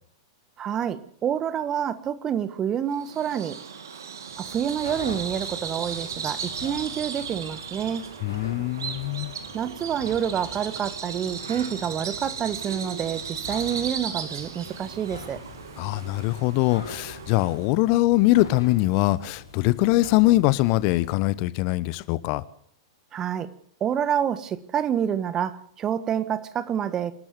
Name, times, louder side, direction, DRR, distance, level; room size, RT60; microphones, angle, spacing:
voice 1, 0.6-3.6 4.4-8.0 9.5-15.4 23.1-23.5 23.8-27.1, right 9 dB, 25° right, 1.4 m, -28 dB
Bird vocalization bird call bird song, 2.9-17.7, right 6 dB, 65° right, 2.5 m, -36 dB
sound 1, 4.2-21.4, left 4 dB, 80° left, 6.6 m, -44 dB
voice 2, 8.2-9.3 15.8-22.4, left 18 dB, 40° left, 1.0 m, -22 dB
27.0 x 12.5 x 7.8 m
figure-of-eight pair, 100°, 2 cm